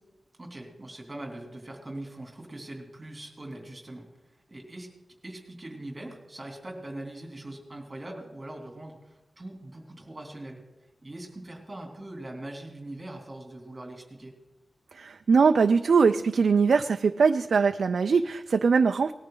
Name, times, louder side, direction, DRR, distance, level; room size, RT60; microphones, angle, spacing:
voice 1, 0.4-4.9 5.2-10.6 11.0-14.3, right 1 dB, 25° right, 1 dB, 3.0 m, -42 dB
voice 2, 14.9-19.1, right 5 dB, 80° right, 8 dB, 0.4 m, -22 dB
19.5 x 13.5 x 3.9 m, 1.1 s
wide cardioid pair, 130°, 0 cm